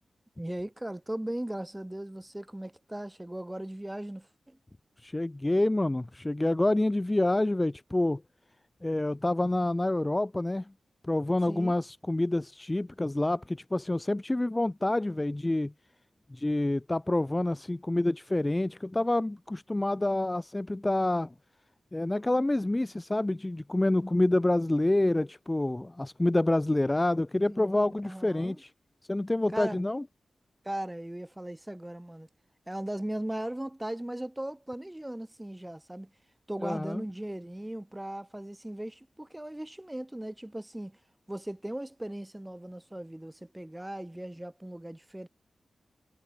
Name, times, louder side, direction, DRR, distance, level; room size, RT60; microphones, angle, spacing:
voice 1, 0.4-4.6 11.5-11.7 27.5-28.6 29.5-29.8 30.6-32.3 32.7-36.1 36.5-41.0 41.3-45.3, right 1 dB, 10° right, 3.0 m, -38 dB
voice 2, 5.0-8.2 8.8-10.7 11.0-15.7 16.3-21.3 21.9-28.7 29.1-30.0 36.6-37.0, left 1 dB, 20° left, 0.3 m, -27 dB
cardioid pair, 65°, 0 cm